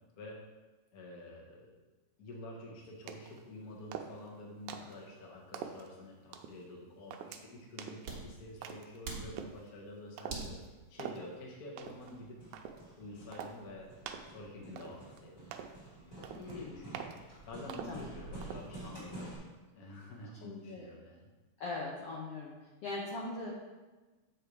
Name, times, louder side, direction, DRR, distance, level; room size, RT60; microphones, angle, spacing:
voice 1, 0.9-1.8 2.2-10.5 10.9-12.4 13.0-13.9 14.3-15.5 16.4-17.2 17.5-21.3, left 1 dB, 60° left, -1 dB, 0.9 m, -48 dB
sound 1, 3.1-3.4 3.9-4.3 4.7-5.0 5.5-5.9 6.3-6.6 7.1-7.4 7.8-8.1 8.6-9.0 9.4-9.6 10.2-10.5 11.0-11.2 11.8-12.1 12.5-12.8 13.3-13.6 14.1-14.3 14.8-15.2 15.5-15.8 16.2-16.5 16.9-17.2 17.7-18.0 18.4-18.7, right 8 dB, 80° right, 1.8 m, -44 dB
sound 2, 3.7-11.4, right 4 dB, 55° right, 1.7 m, -48 dB
Hammer, 11.8-19.4, right 2 dB, 10° left, 2.3 m, -49 dB
voice 2, 16.4-16.9 17.9-18.0 20.4-20.9 21.6-22.5 22.8-23.5, left 3 dB, 75° left, -3 dB, 1.4 m, -40 dB
8.0 x 4.7 x 4.9 m, 1.2 s
omnidirectional pair, 3.8 m